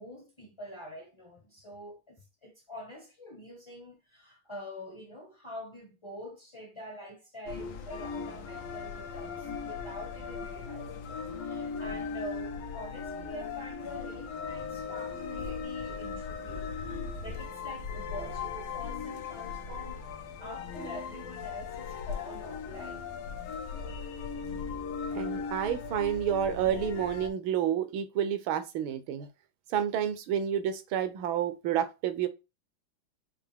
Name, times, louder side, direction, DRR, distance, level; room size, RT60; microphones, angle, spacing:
voice 1, 0.0-20.0 20.4-23.1, equal, 30° left, 0.5 m, -45 dB
sound 1, 7.5-27.3, left 5 dB, 85° left, 1.6 m, -38 dB
voice 2, 25.1-29.3 29.7-32.3, right 9 dB, 75° right, 1.4 m, -29 dB
5.8 x 2.5 x 3.4 m
omnidirectional pair, 2.3 m